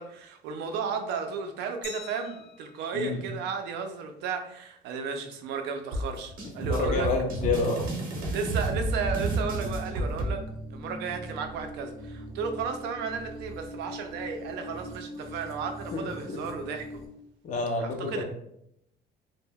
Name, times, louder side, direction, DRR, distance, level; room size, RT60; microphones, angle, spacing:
voice 1, 0.0-7.1 8.2-10.4 10.7-17.0 17.8-18.2, right 5 dB, 80° right, 6 dB, 0.4 m, -34 dB
Glass, 1.8-4.6, left 5 dB, 90° left, 0.7 m, -48 dB
sound 1, 5.9-10.3, right 2 dB, 55° right, 0.8 m, -30 dB
voice 2, 6.6-7.9 15.9-16.4 17.4-18.2, left 4 dB, 45° left, 1 dB, 0.5 m, -29 dB
sound 2, 8.6-17.1, equal, 20° right, 0.6 m, -41 dB
2.2 x 2.1 x 3.3 m, 0.77 s
cardioid pair, 110°, 17 cm